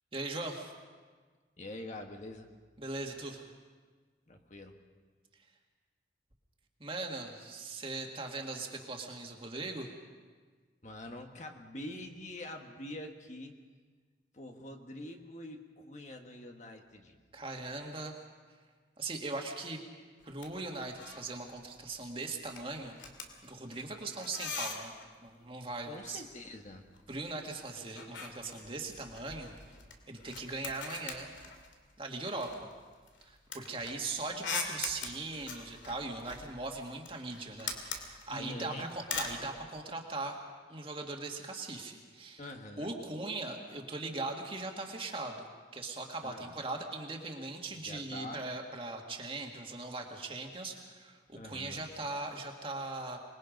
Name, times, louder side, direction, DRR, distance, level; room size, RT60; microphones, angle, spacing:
voice 1, 0.1-0.7 2.8-3.5 6.8-9.9 17.3-18.1 19.0-19.8 20.2-23.0 23.4-24.9 25.2-26.2 27.1-29.6 30.1-31.3 32.0-32.7 33.3-40.4 40.7-42.4 42.8-45.5 45.7-53.2, right 3 dB, 30° right, 2 dB, 2.1 m, -40 dB
voice 2, 1.6-2.5 4.3-4.7 10.8-13.5 14.3-17.2 25.8-26.9 38.3-38.9 42.4-42.9 46.2-46.6 47.8-48.4 51.3-51.9, left 1 dB, 40° left, 4 dB, 1.4 m, -45 dB
sound 1, 20.2-20.5 20.8-21.3 21.6-21.9 22.2-25.1 26.3-27.4 27.6-31.9 32.4-39.4, left 5 dB, 90° left, 2.6 m, -42 dB
26.0 x 21.0 x 5.3 m, 1.5 s
head